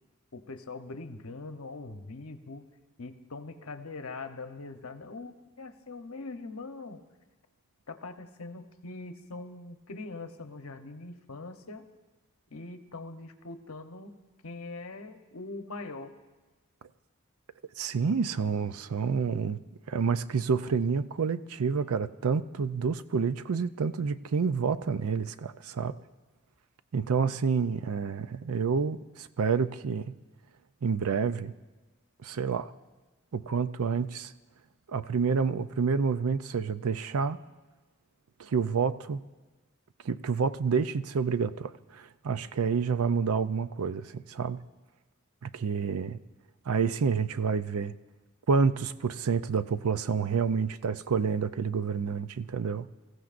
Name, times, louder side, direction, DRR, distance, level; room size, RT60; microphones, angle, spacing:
voice 1, 0.3-2.7 3.0-7.0 7.9-11.8 12.5-14.1 14.4-16.1, left 3 dB, 85° left, 7 dB, 1.0 m, -42 dB
voice 2, 17.8-19.6 19.9-26.0 26.9-30.1 30.8-31.5 32.2-32.7 33.3-34.3 34.9-37.4 38.4-39.2 40.0-44.6 45.4-46.2 46.7-47.9 48.5-52.9, right 5 dB, 85° right, 13 dB, 0.5 m, -28 dB
25.0 x 15.0 x 2.5 m, 1.2 s
head